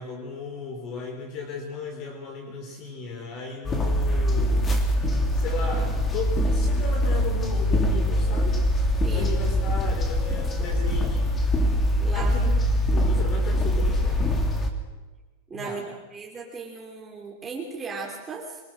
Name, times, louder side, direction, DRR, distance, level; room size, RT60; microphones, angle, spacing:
voice 1, 0.0-4.7 5.3-8.6 9.1-11.4 12.1-12.5 12.9-14.3 15.5-15.9, left 4 dB, 45° left, 3 dB, 4.0 m, -36 dB
sound 1, 3.6-14.7, equal, 20° left, 3.1 m, -23 dB
voice 2, 12.0-12.3 15.5-15.8 16.1-18.6, right 4 dB, 15° right, -1 dB, 3.1 m, -36 dB
26.0 x 20.5 x 6.5 m, 1.3 s
supercardioid pair, 145°, 0 cm